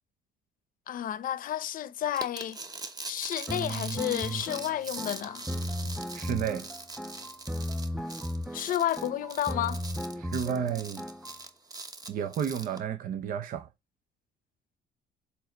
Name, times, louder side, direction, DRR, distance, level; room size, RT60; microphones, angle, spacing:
voice 1, 0.9-2.6 3.1-5.5 8.5-9.8, left 11 dB, 55° left, 0.7 m, -31 dB
sound 1, 2.1-12.8, right 3 dB, 20° right, 1.1 m, -42 dB
sound 2, 3.5-11.4, equal, 5° right, 0.6 m, -36 dB
voice 2, 6.1-6.7 10.2-11.0 12.1-13.7, right 8 dB, 55° right, 0.8 m, -32 dB
7.3 x 3.4 x 5.1 m
cardioid pair, 110°, 17 cm